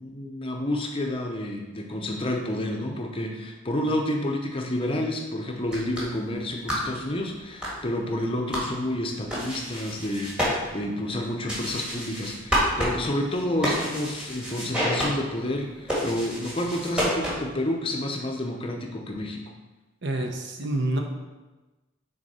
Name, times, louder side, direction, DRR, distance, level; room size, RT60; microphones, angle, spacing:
voice 1, 0.0-19.4, left 1 dB, 25° left, 1 dB, 0.6 m, -29 dB
sound 1, 5.6-17.6, equal, 5° right, 1.5 m, -31 dB
voice 2, 20.0-21.0, right 1 dB, 55° right, 3 dB, 0.8 m, -27 dB
6.4 x 4.0 x 4.1 m, 1.1 s
head